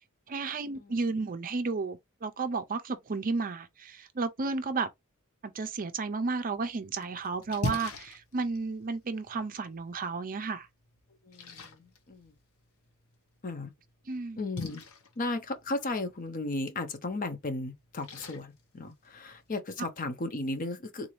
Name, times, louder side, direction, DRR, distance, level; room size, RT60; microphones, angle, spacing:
voice 1, 0.3-4.9 5.4-10.7 14.1-14.4, right 4 dB, 40° right, 0.5 m, -33 dB
Splash splatter, 6.5-19.5, left 2 dB, 70° left, 1.0 m, -44 dB
voice 2, 11.2-12.3 13.4-13.7 14.4-14.8 15.2-21.1, left 2 dB, 40° left, 0.7 m, -35 dB
3.8 x 2.6 x 3.0 m
head